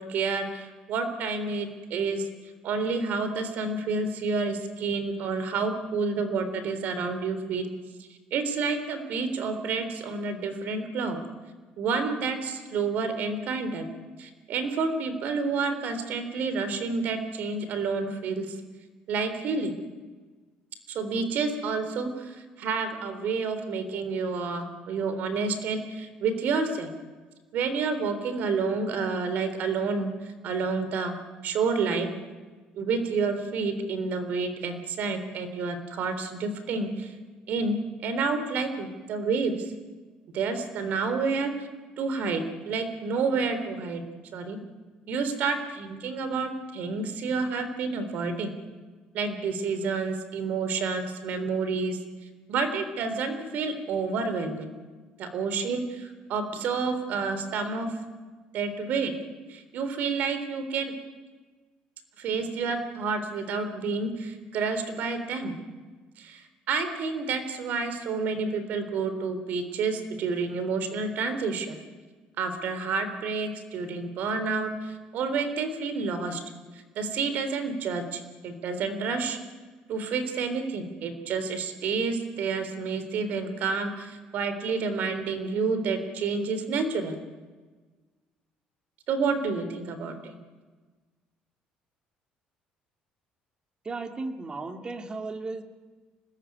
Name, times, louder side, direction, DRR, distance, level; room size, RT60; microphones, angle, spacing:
voice 1, 0.0-2.3 2.6-7.7 8.3-11.2 11.8-13.9 14.2-18.5 19.1-19.7 20.9-26.9 27.5-31.1 31.4-32.1 32.7-37.1 37.5-37.8 38.0-39.7 40.3-41.5 42.0-44.0 44.3-44.6 45.1-48.5 49.1-52.0 52.5-54.7 55.2-57.9 58.5-59.1 59.5-60.9 62.2-65.5 66.2-71.8 72.4-76.4 77.0-79.4 79.9-87.2 89.1-90.3, right 4 dB, 65° right, 10 dB, 3.7 m, -29 dB
voice 2, 93.8-95.6, right 3 dB, 30° right, 6 dB, 2.6 m, -35 dB
25.0 x 19.5 x 9.6 m, 1.4 s
cardioid pair, 110°, 3 cm